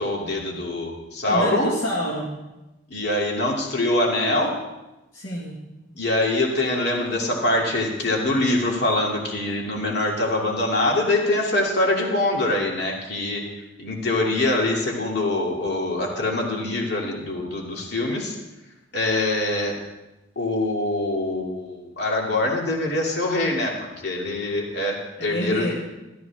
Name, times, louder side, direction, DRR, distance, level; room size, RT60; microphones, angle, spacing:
voice 1, 0.0-1.8 2.9-4.6 5.9-13.5 13.8-18.4 18.9-19.8 20.4-23.8 24.0-25.7, left 2 dB, 55° left, -1 dB, 2.7 m, -24 dB
voice 2, 1.2-2.3 5.1-5.6 25.2-25.7, equal, 70° left, -5 dB, 2.0 m, -28 dB
14.0 x 12.5 x 3.6 m, 0.98 s
head